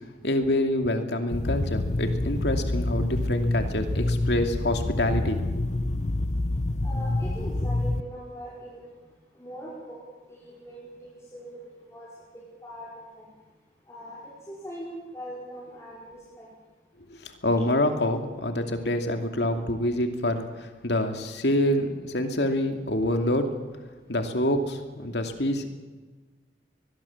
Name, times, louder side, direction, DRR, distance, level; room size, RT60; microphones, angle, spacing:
voice 1, 0.2-5.7 17.1-23.5 24.1-25.7, left 1 dB, 70° left, 6 dB, 2.6 m, -26 dB
sound 1, 1.3-8.0, left 2 dB, 40° left, 0.8 m, -27 dB
voice 2, 6.8-8.9 9.4-10.0 10.3-12.1 12.3-13.2 13.9-14.2 14.5-16.5 17.5-17.6, equal, 15° left, -6 dB, 5.4 m, -41 dB
22.5 x 22.0 x 7.3 m, 1.3 s
head